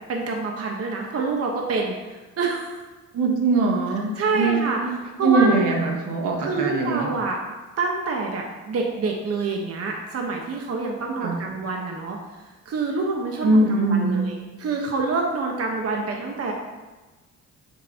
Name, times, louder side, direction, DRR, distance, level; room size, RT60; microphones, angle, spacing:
voice 1, 0.1-2.8 4.2-4.8 5.2-5.7 6.4-7.4 7.8-12.2 12.6-16.5, right 3 dB, 50° right, 0 dB, 1.2 m, -27 dB
voice 2, 3.1-5.0 5.2-7.1 11.2-11.4 13.4-14.3, right 3 dB, 85° right, -1 dB, 1.6 m, -21 dB
8.2 x 7.1 x 2.9 m, 1.2 s
cardioid pair, 90°, 30 cm